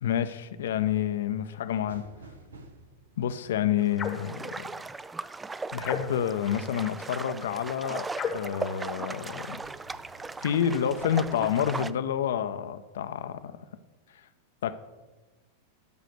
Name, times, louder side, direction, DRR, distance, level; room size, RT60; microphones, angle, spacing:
voice 1, 0.0-2.0 3.2-4.7 5.7-9.6 10.4-13.6 14.6-14.7, left 9 dB, 60° left, 12 dB, 0.6 m, -29 dB
sound 1, 1.7-5.6 8.1-8.5 9.0-11.3, right 2 dB, 70° right, 1.0 m, -52 dB
sound 2, 3.8-11.9, right 3 dB, 10° right, 0.3 m, -38 dB
sound 3, 4.0-4.3 5.8-6.4 8.1-8.6, left 6 dB, 25° left, 1.1 m, -33 dB
12.5 x 5.1 x 6.5 m, 1.2 s
figure-of-eight pair, 90°, 0 cm